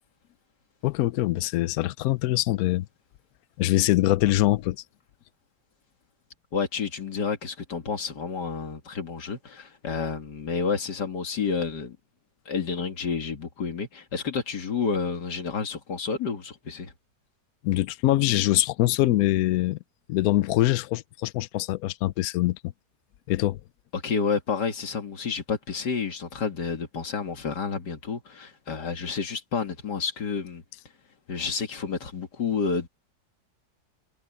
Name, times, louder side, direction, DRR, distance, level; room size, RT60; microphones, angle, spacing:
voice 1, 0.8-2.9 3.6-4.8 17.6-19.8 20.1-22.6 23.3-23.6, left 16 dB, 70° left, 1.0 m, -23 dB
voice 2, 6.5-12.0 12.5-16.9 23.9-30.6 31.3-32.9, left 5 dB, 85° left, 2.6 m, -30 dB
omnidirectional pair, 1.7 m